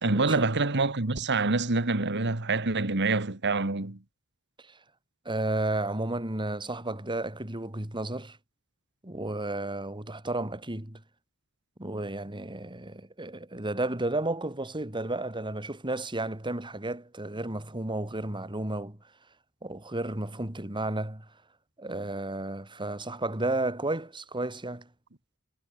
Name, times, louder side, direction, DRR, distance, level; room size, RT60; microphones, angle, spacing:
voice 1, 0.0-4.0, right 3 dB, 55° right, 2.0 m, -26 dB
voice 2, 5.2-8.4 9.0-11.0 11.8-19.0 19.6-21.3 21.8-24.9, right 2 dB, 20° right, 3.0 m, -32 dB
head